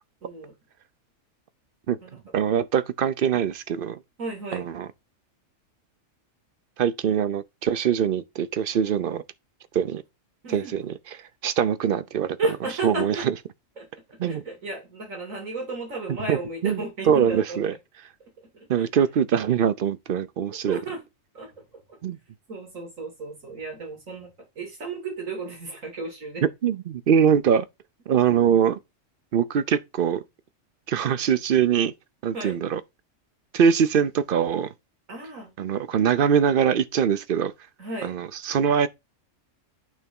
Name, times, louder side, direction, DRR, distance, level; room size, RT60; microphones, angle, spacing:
voice 1, 0.2-0.5 2.0-2.2 4.2-4.7 10.4-10.7 12.4-13.3 13.8-17.6 18.4-18.9 20.7-21.0 21.3-22.0 22.5-26.4 32.3-32.6 35.1-35.5 37.8-38.2, right 3 dB, 90° right, 3.1 m, -34 dB
voice 2, 2.3-4.0 4.5-4.9 6.8-9.2 9.7-10.0 10.5-10.9 11.4-12.4 12.8-13.1 14.2-14.4 16.3-16.4 16.6-16.8 17.1-17.7 18.7-20.8 22.0-22.2 26.6-27.7 28.1-28.8 29.3-30.2 30.9-31.9 32.2-32.8 33.5-34.7 35.6-37.5 38.0-38.9, right 8 dB, 55° right, 0.7 m, -22 dB
9.0 x 3.4 x 5.3 m
omnidirectional pair, 1.3 m